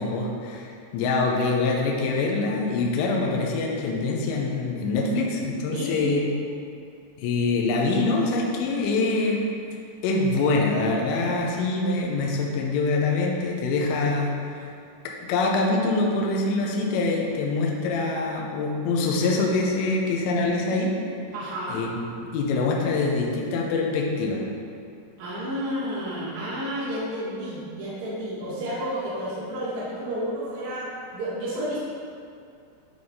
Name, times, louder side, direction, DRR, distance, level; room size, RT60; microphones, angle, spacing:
voice 1, 0.0-6.3 7.2-9.4 10.0-14.3 15.3-20.9 21.7-21.9 22.2-24.4, left 3 dB, 85° left, -1 dB, 2.7 m, -24 dB
voice 2, 5.7-6.1 21.3-21.8 25.2-31.8, equal, 55° right, -9 dB, 2.4 m, -31 dB
9.5 x 3.9 x 3.6 m, 2.4 s
omnidirectional pair, 5.7 m